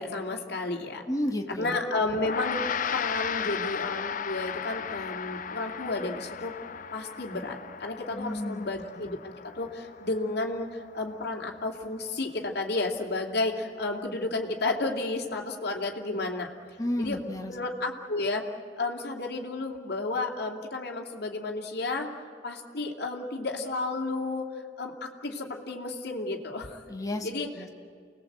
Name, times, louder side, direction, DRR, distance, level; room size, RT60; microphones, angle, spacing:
voice 1, 0.0-1.0 1.6-2.6 2.9-6.6 6.9-16.5 17.0-17.2 17.5-18.5 18.8-22.1 22.4-24.5 24.8-26.8 27.2-27.5, left 2 dB, 65° left, 1 dB, 2.7 m, -32 dB
voice 2, 1.1-1.8 8.1-8.7 9.0-9.1 16.8-17.5 26.9-27.3 27.5-27.7, left 1 dB, 20° left, 2 dB, 2.0 m, -32 dB
Gong, 2.1-11.7, left 7 dB, 45° left, 0.6 m, -36 dB
29.0 x 19.5 x 8.1 m, 2.2 s
head